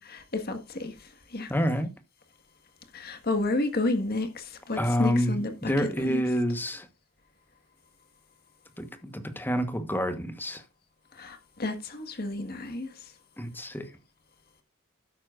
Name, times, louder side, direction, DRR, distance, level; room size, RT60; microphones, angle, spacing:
voice 1, 0.0-1.5 2.9-6.2 11.1-13.1, left 2 dB, 45° left, 1.6 m, -31 dB
voice 2, 1.5-1.9 4.8-6.9 8.8-10.6 13.4-13.9, equal, 10° left, 1.2 m, -28 dB
12.5 x 9.6 x 2.5 m
head